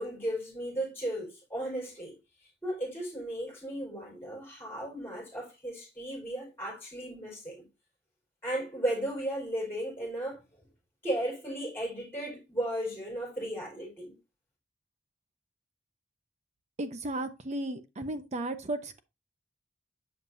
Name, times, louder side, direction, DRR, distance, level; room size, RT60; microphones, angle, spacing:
voice 1, 0.0-2.2 2.6-7.7 8.4-10.4 11.0-14.1, right 1 dB, 15° left, 4.7 m, -35 dB
voice 2, 16.8-19.0, right 1 dB, 40° right, 0.8 m, -34 dB
7.4 x 6.1 x 2.7 m
head